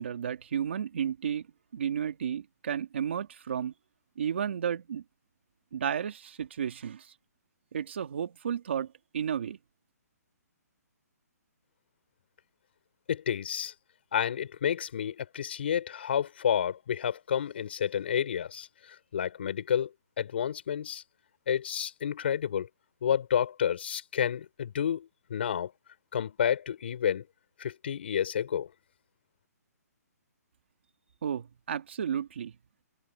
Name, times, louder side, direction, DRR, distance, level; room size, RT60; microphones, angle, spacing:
voice 1, 0.0-1.5 1.7-3.7 4.2-5.0 5.7-7.1 7.7-9.6 31.2-32.5, right 8 dB, 45° right, 2.5 m, -32 dB
voice 2, 13.1-13.7 14.1-18.7 19.1-19.9 20.2-21.0 21.5-22.7 23.0-25.7 26.1-27.3 27.6-28.7, left 9 dB, 40° left, 5.3 m, -30 dB
hypercardioid pair, 175°, 9 cm